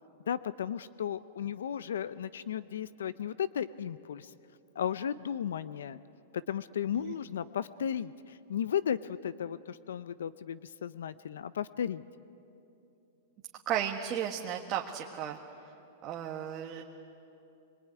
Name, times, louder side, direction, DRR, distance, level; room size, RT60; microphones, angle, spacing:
voice 1, 0.3-4.3 4.7-6.0 6.3-12.0, left 9 dB, 85° left, 16 dB, 0.6 m, -35 dB
voice 2, 13.6-15.4 16.0-16.8, right 10 dB, 35° right, 1 dB, 1.5 m, -34 dB
25.5 x 23.0 x 9.5 m, 2.8 s
hypercardioid pair, 135°, 0 cm